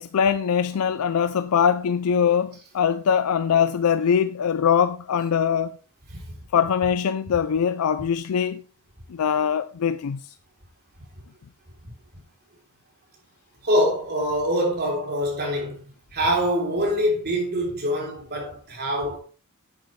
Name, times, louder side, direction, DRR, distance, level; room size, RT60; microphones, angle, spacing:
voice 1, 0.0-5.8 6.5-8.6 9.1-10.2, left 7 dB, 75° left, 0.4 m, -22 dB
voice 2, 13.6-15.8 16.1-19.2, equal, 50° right, 3.4 m, -24 dB
9.8 x 8.7 x 3.2 m
head